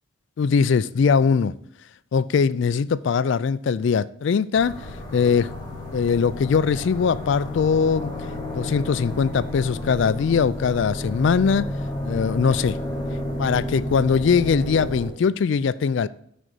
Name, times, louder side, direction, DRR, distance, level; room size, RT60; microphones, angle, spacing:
voice 1, 0.4-1.5 2.1-5.5 5.9-8.1 8.5-11.6 12.0-12.8 13.4-16.1, left 6 dB, 60° left, 0.3 m, -21 dB
sound 1, 4.5-15.1, left 1 dB, 20° left, 2.6 m, -31 dB
6.4 x 5.2 x 6.1 m
head